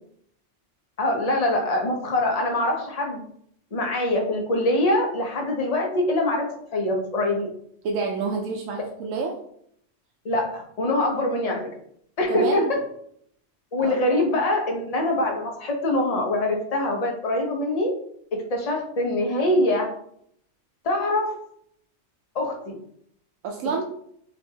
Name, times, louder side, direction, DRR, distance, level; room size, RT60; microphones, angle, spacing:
voice 1, 1.0-3.2 3.7-7.5 10.2-11.6 12.2-12.7 13.7-17.9 18.5-19.9 20.8-21.3 22.3-22.7, left 1 dB, 35° left, 1 dB, 0.8 m, -24 dB
voice 2, 7.8-9.4 12.3-12.7 13.8-14.2 23.4-23.8, right 4 dB, 85° right, 1 dB, 1.0 m, -28 dB
6.2 x 2.6 x 2.8 m, 0.68 s
omnidirectional pair, 1.3 m